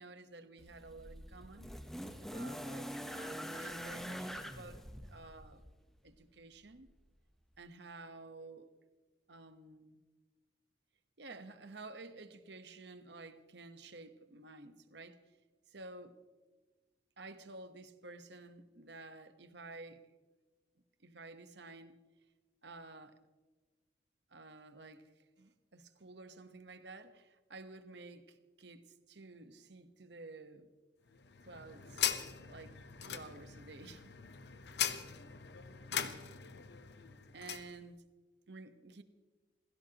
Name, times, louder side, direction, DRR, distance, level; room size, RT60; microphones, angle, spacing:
voice 1, 0.0-1.7 2.2-5.6 6.0-6.9 7.6-8.7 9.3-10.0 11.2-15.2 15.7-16.2 17.2-20.1 21.0-22.0 22.6-23.2 24.3-25.1 25.4-30.7 31.4-32.0 32.5-34.1 37.3-38.1 38.5-39.0, right 3 dB, 65° right, 1.1 m, -52 dB
sound 1, 0.6-5.8 6.9-7.0, equal, ahead, 0.9 m, -44 dB
sound 2, 31.1-37.7, left 9 dB, 60° left, 0.9 m, -40 dB
28.0 x 16.5 x 3.0 m
head